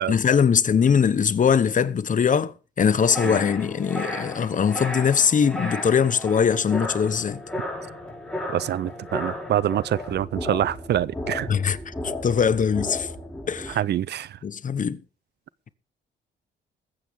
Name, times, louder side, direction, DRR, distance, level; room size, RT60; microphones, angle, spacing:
voice 1, 0.0-7.4 11.5-11.9 12.2-13.1 13.5-13.8 14.4-15.0, left 7 dB, 40° left, 1.0 m, -21 dB
sound 1, 2.8-13.7, left 1 dB, 5° left, 6.8 m, -34 dB
voice 2, 8.5-11.5 13.7-14.4, right 11 dB, 60° right, 0.5 m, -26 dB
21.0 x 8.5 x 3.6 m
cardioid pair, 90°, 20 cm